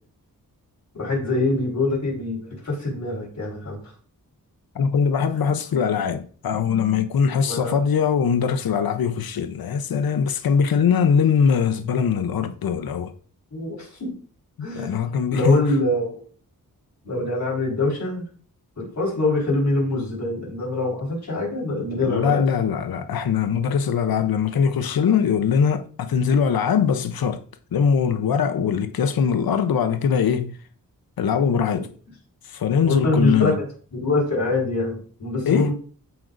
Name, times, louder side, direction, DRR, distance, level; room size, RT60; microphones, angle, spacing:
voice 1, 0.9-3.8 7.4-7.8 13.5-14.1 14.6-15.0 15.3-16.2 17.0-18.2 18.8-22.4 28.6-28.7 32.9-33.7 33.9-35.7, left 2 dB, 50° left, 4.0 m, -24 dB
voice 2, 4.7-13.1 14.6-15.6 21.9-27.4 27.7-30.6 31.2-31.9 32.5-33.6 35.4-35.7, left 7 dB, 90° left, 0.7 m, -21 dB
14.0 x 5.2 x 2.5 m
wide cardioid pair, 125°, 35 cm